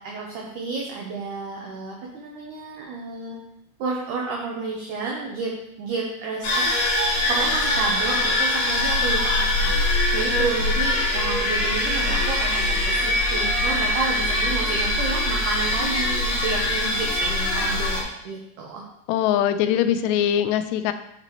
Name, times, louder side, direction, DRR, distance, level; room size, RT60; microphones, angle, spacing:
voice 1, 0.0-3.4 3.8-5.5 5.8-6.9 7.3-18.8, right 4 dB, 90° right, -1 dB, 1.7 m, -31 dB
sound 1, 6.4-18.0, left 1 dB, 55° left, 2.8 m, -23 dB
voice 2, 19.1-20.9, left 10 dB, 90° left, 10 dB, 2.7 m, -22 dB
7.3 x 6.7 x 3.0 m, 0.79 s
omnidirectional pair, 4.8 m